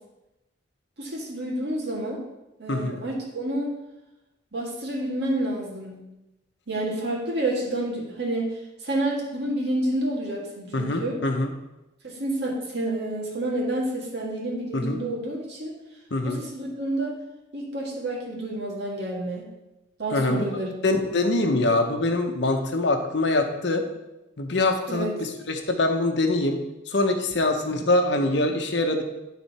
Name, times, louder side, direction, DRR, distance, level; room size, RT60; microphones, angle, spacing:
voice 1, 1.0-2.2 2.6-3.7 4.5-6.0 6.7-8.5 8.8-11.2 12.0-15.7 16.2-17.1 17.5-19.5 20.0-20.7 24.9-25.2, right 1 dB, 60° right, -2 dB, 1.8 m, -29 dB
voice 2, 2.7-3.0 10.7-11.5 14.7-15.0 16.1-16.4 20.1-20.4 20.8-23.8 24.4-26.6 26.9-29.0, left 2 dB, 65° left, 5 dB, 0.9 m, -24 dB
11.0 x 4.1 x 4.2 m, 0.99 s
head